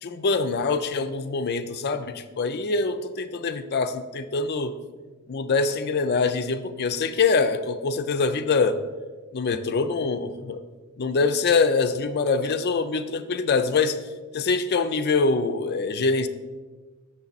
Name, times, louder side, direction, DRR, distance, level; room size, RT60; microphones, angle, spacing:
voice 1, 0.0-4.7 5.3-8.8 9.3-10.6 11.0-14.0 14.3-16.3, left 4 dB, 45° left, 10 dB, 0.4 m, -24 dB
7.2 x 6.5 x 4.0 m, 1.3 s
head